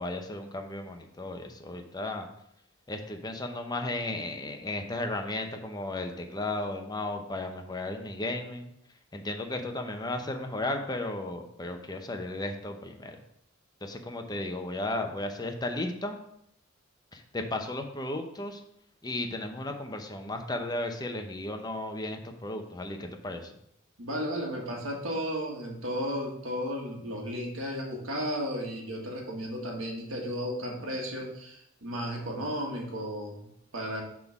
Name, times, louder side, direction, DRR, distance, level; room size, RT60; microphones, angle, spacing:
voice 1, 0.0-2.3 2.9-8.7 9.1-13.2 13.8-16.2 17.1-18.6 19.0-23.5, left 2 dB, 20° left, 4 dB, 0.7 m, -34 dB
voice 2, 24.0-34.0, equal, 85° right, 0 dB, 1.6 m, -34 dB
6.0 x 3.6 x 5.9 m, 0.74 s
head